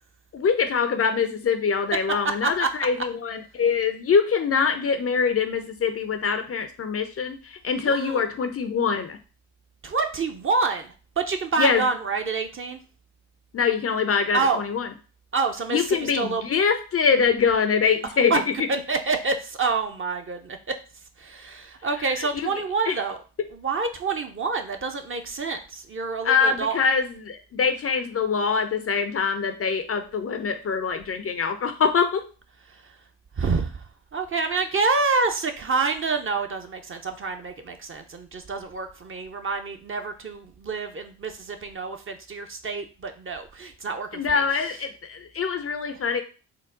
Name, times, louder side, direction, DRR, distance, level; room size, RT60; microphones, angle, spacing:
voice 1, 0.3-9.2 11.6-11.8 13.5-14.9 15.7-18.4 22.2-22.5 22.9-23.0 26.2-32.2 44.1-46.2, left 6 dB, 35° left, 8 dB, 0.5 m, -24 dB
voice 2, 7.8-8.2 9.8-12.8 14.3-14.6 15.3-16.4 18.3-20.8 21.2-23.2 23.5-26.7 32.7-32.9 33.4-33.8 34.1-44.7, right 4 dB, 30° right, 5 dB, 0.6 m, -27 dB
3.8 x 2.1 x 3.7 m, 0.36 s
hypercardioid pair, 45°, 43 cm